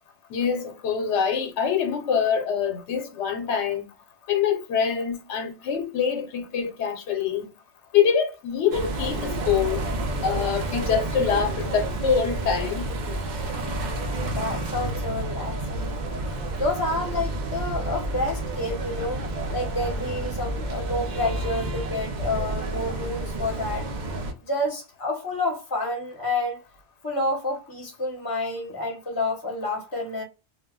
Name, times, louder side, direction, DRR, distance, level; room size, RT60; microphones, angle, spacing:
voice 1, 0.3-3.8 4.3-7.5 7.9-9.8 10.2-12.9, left 7 dB, 90° left, 0.9 m, -25 dB
sound 1, 8.7-24.3, right 1 dB, 55° right, 0.6 m, -30 dB
voice 2, 14.2-16.0 16.6-19.2 19.5-23.9 24.5-26.6 27.0-30.2, left 2 dB, 25° left, 0.7 m, -29 dB
2.2 x 2.1 x 3.5 m
omnidirectional pair, 1.1 m